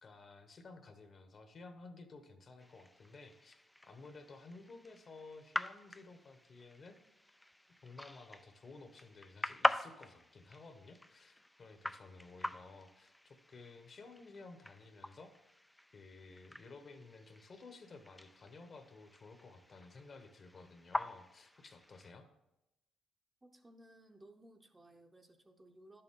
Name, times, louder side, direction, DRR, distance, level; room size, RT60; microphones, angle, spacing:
voice 1, 0.0-3.6 3.9-7.0 7.8-15.6 15.9-22.3, left 3 dB, 45° left, 7 dB, 1.1 m, -54 dB
sound 1, 2.6-22.1, left 1 dB, 5° left, 0.3 m, -43 dB
voice 2, 23.4-26.0, right 1 dB, 15° right, 4 dB, 0.8 m, -60 dB
10.5 x 6.8 x 3.7 m, 0.89 s
cardioid pair, 90°, 0 cm